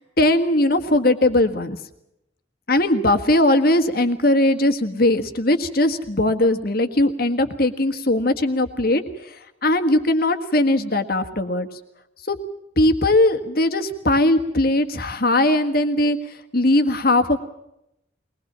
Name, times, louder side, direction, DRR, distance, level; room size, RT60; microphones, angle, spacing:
voice 1, 0.0-1.8 2.7-9.3 9.6-11.7 12.3-12.4 12.8-17.4, left 1 dB, 50° left, 8 dB, 1.6 m, -19 dB
21.5 x 20.0 x 7.4 m, 0.81 s
head